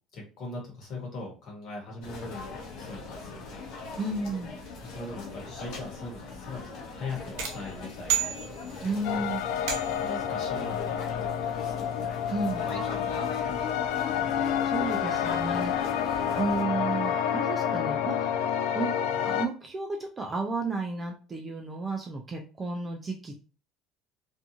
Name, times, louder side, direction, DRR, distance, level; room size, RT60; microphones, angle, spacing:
voice 1, 0.1-3.6 4.8-6.6 6.9-8.4 8.7-9.3 10.0-11.3 11.6-11.9 12.6-13.7, left 2 dB, 40° left, -2 dB, 1.1 m, -41 dB
sound 1, 2.0-16.6, left 3 dB, 55° left, 0.9 m, -40 dB
voice 2, 4.0-4.6 8.8-9.4 12.3-12.7 14.6-15.7 16.3-18.3 18.7-18.9 19.2-23.4, right 3 dB, 15° right, 2 dB, 0.3 m, -32 dB
sound 2, 7.4-9.0 9.7-10.2, right 10 dB, 90° right, 0.8 m, -32 dB
sound 3, 9.0-19.5, left 9 dB, 70° left, 0.3 m, -29 dB
2.5 x 2.3 x 2.8 m, 0.35 s
cardioid pair, 175°, 0 cm